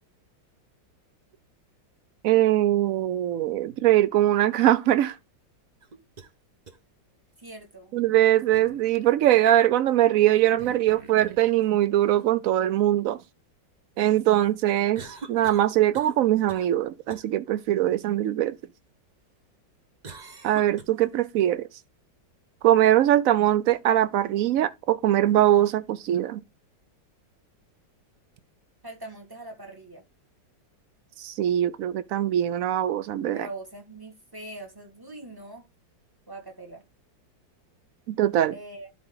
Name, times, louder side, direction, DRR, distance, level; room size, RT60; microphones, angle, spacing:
voice 1, 2.2-5.2 7.9-13.2 14.0-15.0 15.3-18.5 20.4-21.7 22.6-26.4 31.2-33.5 38.1-38.5, right 13 dB, 75° right, 0.7 m, -22 dB
sound 1, 5.8-6.3 6.7-6.8 8.5-8.8 10.6-11.5 15.0-16.2 16.5-16.8 17.1-17.3 20.0-20.8, right 4 dB, 35° right, 0.8 m, -43 dB
voice 2, 7.4-8.0 28.8-30.0 33.3-35.7 36.3-36.8 38.5-38.9, right 2 dB, 10° right, 1.9 m, -42 dB
11.0 x 4.2 x 3.8 m
omnidirectional pair, 2.0 m